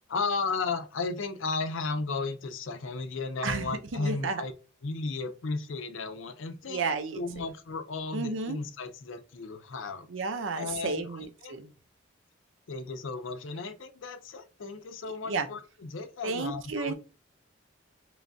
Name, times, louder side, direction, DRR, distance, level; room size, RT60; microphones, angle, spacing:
voice 1, 0.1-4.5 4.8-6.8 7.1-10.1 10.6-11.6 12.7-16.9, left 4 dB, 80° left, 0.5 m, -34 dB
voice 2, 3.4-4.4 6.7-7.2 8.1-8.6 10.1-11.7 15.3-15.5 16.2-16.9, right 4 dB, 80° right, 0.6 m, -32 dB
3.4 x 3.2 x 2.6 m
head